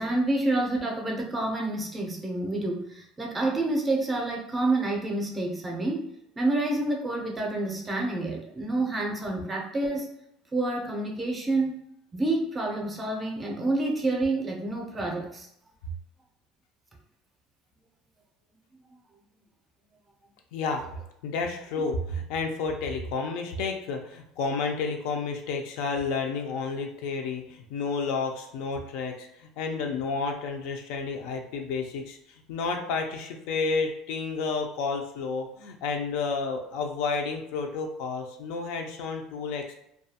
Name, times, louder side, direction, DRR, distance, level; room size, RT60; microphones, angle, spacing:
voice 1, 0.0-6.1 6.4-10.1 10.5-11.8 12.1-15.5, right 2 dB, 15° right, 0 dB, 0.5 m, -28 dB
voice 2, 20.5-20.8 21.2-39.7, left 4 dB, 75° left, 3 dB, 0.4 m, -31 dB
2.4 x 2.2 x 2.7 m, 0.77 s
cardioid pair, 145°, 0 cm